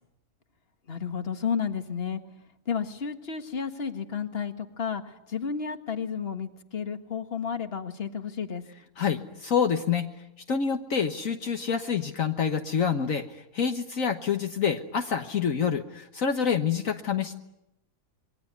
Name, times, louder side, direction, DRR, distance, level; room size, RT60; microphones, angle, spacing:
voice 1, 0.9-2.2 2.7-8.6, left 6 dB, 45° left, 7 dB, 1.9 m, -32 dB
voice 2, 9.0-10.1 10.5-17.3, left 7 dB, 65° left, 6 dB, 1.6 m, -27 dB
27.0 x 22.5 x 9.6 m, 0.88 s
omnidirectional pair, 1.5 m